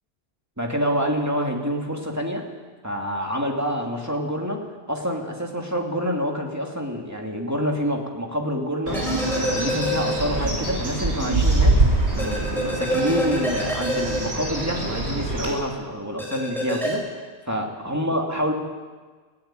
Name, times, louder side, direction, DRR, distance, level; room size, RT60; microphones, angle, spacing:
voice 1, 0.6-2.5 2.8-9.0 9.3-18.5, equal, 15° right, 1 dB, 2.7 m, -27 dB
sound 1, 8.9-10.6 10.9-11.0 12.2-15.0 16.2-16.9, equal, ahead, 5.0 m, -27 dB
Bird, 8.9-15.5, right 2 dB, 90° right, 5.7 m, -24 dB
18.0 x 16.0 x 9.1 m, 1.4 s
omnidirectional pair, 1.1 m